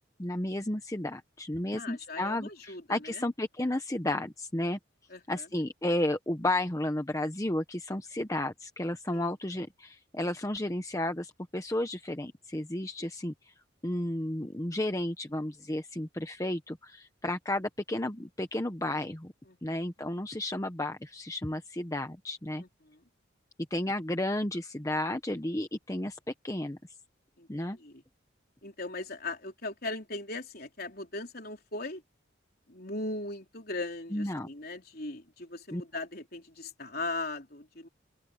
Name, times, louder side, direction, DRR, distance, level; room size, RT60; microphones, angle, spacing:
voice 1, 0.2-4.8 5.3-13.3 13.8-19.3 19.6-22.6 23.7-26.8 27.5-27.8 34.1-34.5 35.7-35.8, left 1 dB, 15° left, 0.9 m, -32 dB
voice 2, 1.8-3.2 5.1-5.5 9.1-9.3 19.5-19.6 22.6-23.0 27.4-28.0 28.6-32.0 32.7-37.9, left 2 dB, 50° left, 3.9 m, -39 dB
open air
head